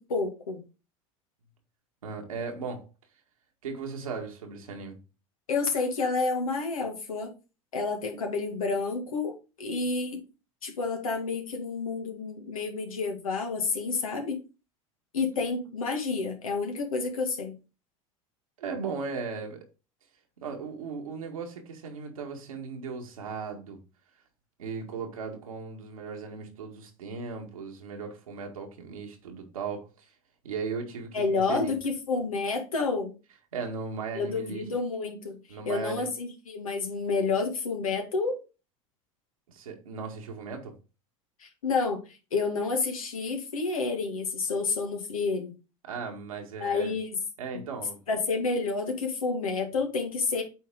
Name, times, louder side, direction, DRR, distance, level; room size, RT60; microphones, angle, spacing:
voice 1, 0.1-0.6 5.5-7.3 7.7-10.2 10.6-14.4 15.1-17.5 31.1-33.1 34.1-35.4 35.7-38.4 41.4-42.0 42.3-45.5 46.6-47.1 48.1-50.4, left 4 dB, 85° left, 1.9 m, -29 dB
voice 2, 2.0-2.9 3.6-5.0 18.6-19.7 20.4-23.8 24.6-30.1 30.4-31.7 33.5-34.7 35.5-36.1 39.5-40.7 45.8-47.0 47.4-48.0, right 5 dB, 85° right, 1.9 m, -37 dB
8.3 x 4.2 x 3.8 m
hypercardioid pair, 85°, 17 cm